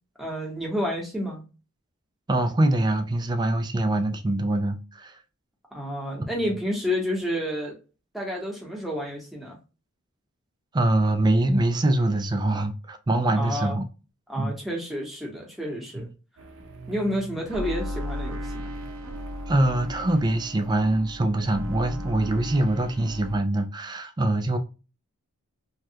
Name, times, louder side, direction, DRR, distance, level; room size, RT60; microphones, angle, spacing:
voice 1, 0.2-1.4 5.7-7.7 8.1-9.6 13.3-13.8 14.3-16.0 16.9-18.7, equal, ahead, 0.9 m, -30 dB
voice 2, 2.3-5.2 10.7-13.9 14.4-14.5 16.0-16.1 19.5-24.6, right 1 dB, 20° right, 0.3 m, -24 dB
sound 1, 16.4-23.4, equal, 75° right, 0.7 m, -36 dB
3.2 x 2.3 x 2.7 m
head